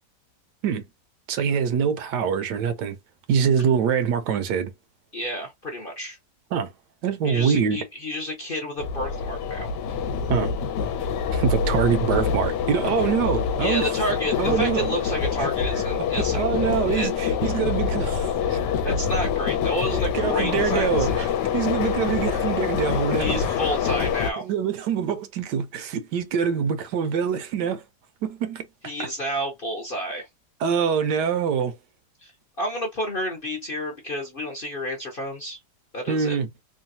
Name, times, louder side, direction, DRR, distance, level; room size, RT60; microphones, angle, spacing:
voice 1, 1.3-3.0 3.3-4.7 6.5-6.7 7.0-7.8 10.3-10.5 11.3-14.0 14.4-15.0 15.4-15.5 16.2-18.6 20.1-21.3 21.5-23.6 24.4-27.8 28.2-28.7 30.6-31.7 36.1-36.5, right 7 dB, 75° right, 1.2 m, -24 dB
voice 2, 5.1-6.2 7.2-9.7 13.6-16.5 16.9-17.1 18.8-21.3 23.2-24.5 28.8-30.3 32.2-32.3 32.6-35.6 35.9-36.4, equal, 45° left, 0.8 m, -30 dB
sound 1, 8.8-24.3, left 7 dB, 75° left, 1.2 m, -25 dB
3.2 x 2.3 x 2.6 m
omnidirectional pair, 1.9 m